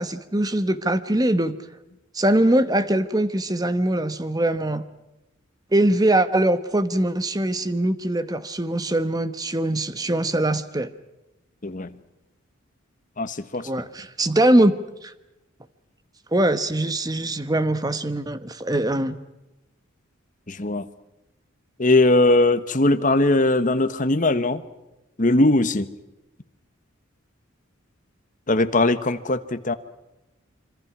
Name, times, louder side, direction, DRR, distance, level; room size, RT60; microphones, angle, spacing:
voice 1, 0.0-1.6 2.1-4.8 5.7-10.9 13.6-14.7 15.0-15.1 16.3-19.2, right 1 dB, 20° right, 12 dB, 1.1 m, -22 dB
voice 2, 11.6-12.0 13.2-13.7 20.5-20.9 21.8-24.6 25.2-25.9 28.5-29.7, left 2 dB, 40° left, 11 dB, 1.2 m, -20 dB
26.0 x 25.0 x 6.1 m, 0.97 s
head